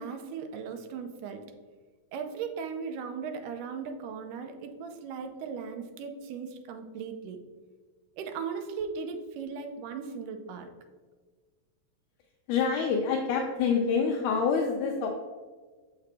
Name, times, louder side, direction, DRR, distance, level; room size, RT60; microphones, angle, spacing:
voice 1, 0.0-1.5 2.1-7.4 8.2-10.7, right 6 dB, 80° right, 6 dB, 2.1 m, -37 dB
voice 2, 12.5-15.1, left 5 dB, 80° left, 1 dB, 1.8 m, -26 dB
6.8 x 5.6 x 3.4 m, 1.4 s
omnidirectional pair, 4.0 m